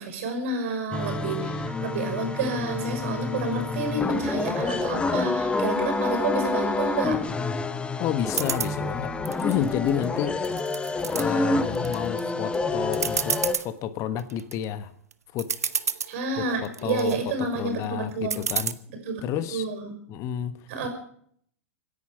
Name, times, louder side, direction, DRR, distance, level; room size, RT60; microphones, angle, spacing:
voice 1, 0.0-7.2 16.1-18.5 19.0-19.2 19.5-20.0 20.7-20.9, right 3 dB, 60° right, 5 dB, 6.1 m, -29 dB
sound 1, 0.9-13.5, left 3 dB, 15° left, 1.3 m, -28 dB
voice 2, 8.0-9.1 9.4-10.4 11.1-14.9 15.3-15.5 16.4-18.8 19.2-19.7 20.1-20.9, left 10 dB, 40° left, 12 dB, 1.3 m, -30 dB
sound 2, 8.3-8.7 9.3-10.0 10.4-11.2 11.8-12.2 12.5-12.6 12.9-13.7 14.2-14.5 15.1-15.2 15.4-16.1 16.7-17.2 18.3-18.7, right 6 dB, 85° right, 1.0 m, -29 dB
25.0 x 10.5 x 5.0 m, 0.63 s
hypercardioid pair, 105°, 8 cm